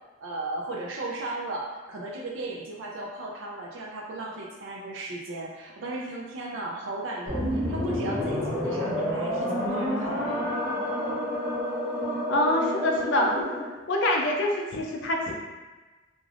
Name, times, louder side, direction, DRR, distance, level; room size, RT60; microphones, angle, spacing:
voice 1, 0.2-10.4, right 2 dB, 65° right, -2 dB, 0.4 m, -35 dB
sound 1, 7.3-13.7, equal, 30° right, 1.0 m, -29 dB
voice 2, 12.3-13.4 13.9-15.3, left 1 dB, 60° left, 1 dB, 0.4 m, -25 dB
3.3 x 2.4 x 2.4 m, 1.2 s
head